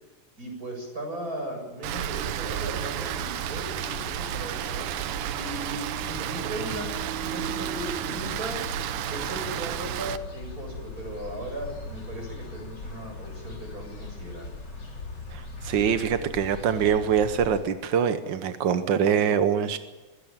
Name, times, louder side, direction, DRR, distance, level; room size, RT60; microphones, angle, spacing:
voice 1, 0.4-5.1 5.4-6.9 7.2-8.6 9.1-14.5, right 1 dB, 25° right, 2 dB, 7.7 m, -37 dB
Rain, 1.8-10.2, right 11 dB, 85° right, 2.4 m, -32 dB
sound 1, 3.0-17.6, left 3 dB, 35° left, 4.2 m, -40 dB
voice 2, 15.3-19.8, right 8 dB, 65° right, 10 dB, 1.1 m, -24 dB
22.5 x 16.5 x 8.9 m, 1.2 s
omnidirectional pair, 3.4 m